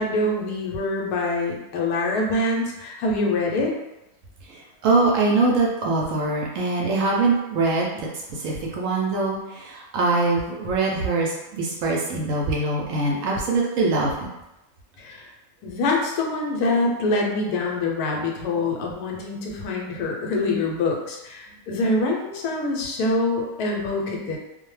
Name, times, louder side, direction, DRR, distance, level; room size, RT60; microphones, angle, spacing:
voice 1, 0.0-3.8 15.0-15.3 15.6-24.4, left 2 dB, 90° left, -1 dB, 1.1 m, -25 dB
voice 2, 4.5-14.1, right 3 dB, 70° right, -2 dB, 0.8 m, -23 dB
2.5 x 2.1 x 3.1 m, 0.93 s
omnidirectional pair, 1.6 m